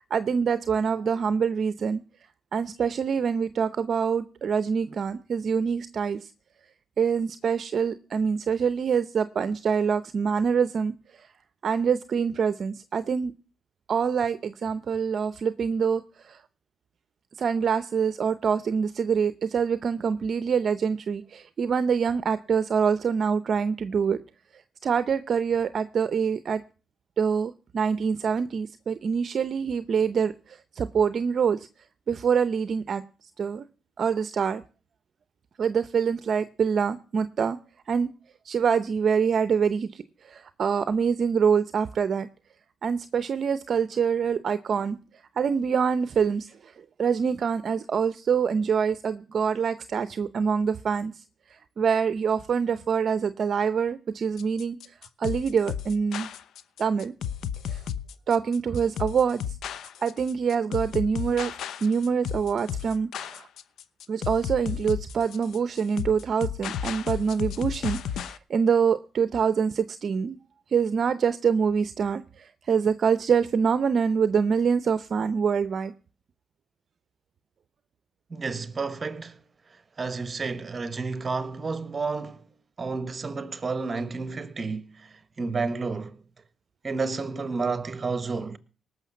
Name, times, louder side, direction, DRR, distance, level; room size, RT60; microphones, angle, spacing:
voice 1, 0.1-2.0 2.5-6.3 7.0-11.3 11.6-13.3 13.9-16.4 17.4-24.2 24.5-26.6 27.2-31.7 32.1-33.0 33.4-33.6 34.0-34.6 35.6-37.6 37.9-38.1 38.4-42.3 42.8-45.0 45.4-46.7 47.0-51.2 51.5-56.3 56.8-57.1 57.7-57.8 58.3-59.6 60.0-63.5 64.1-70.4 70.7-75.9, right 6 dB, 50° right, 0.7 m, -25 dB
sound 1, 54.4-68.4, left 9 dB, 70° left, 0.8 m, -33 dB
voice 2, 78.3-79.4 80.0-82.5 82.8-86.2 86.8-88.6, right 4 dB, 30° right, 1.4 m, -31 dB
18.5 x 6.6 x 7.2 m
cardioid pair, 90°, 0 cm